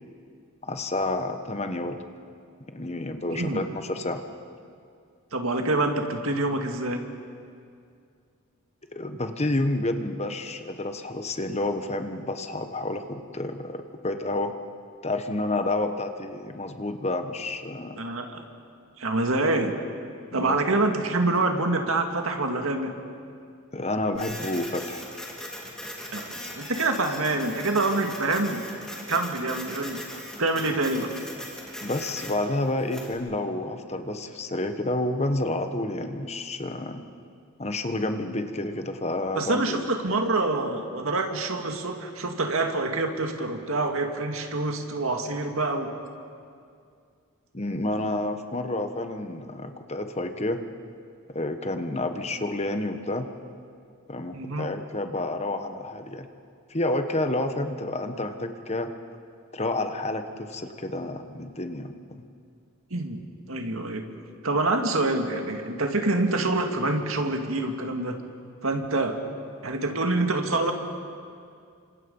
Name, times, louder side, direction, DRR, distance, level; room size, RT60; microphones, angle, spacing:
voice 1, 0.6-2.0 2.7-4.2 8.9-14.5 15.0-18.0 20.3-20.6 23.7-25.0 31.8-37.0 37.6-39.8 47.5-50.6 51.3-53.3 54.1-56.3 56.7-58.9 59.5-62.2, left 2 dB, 30° left, 7 dB, 1.3 m, -29 dB
voice 2, 3.3-3.6 5.3-7.0 18.0-18.4 19.0-19.8 20.3-23.0 26.1-28.6 29.1-30.0 30.4-31.1 39.3-45.9 54.3-54.7 62.9-63.2 63.5-64.0 64.4-68.2 68.6-69.2 69.6-70.7, right 2 dB, 70° right, 4 dB, 2.2 m, -26 dB
Printer, 24.1-33.1, left 1 dB, 5° left, 3.2 m, -39 dB
29.0 x 26.0 x 5.5 m, 2.3 s
head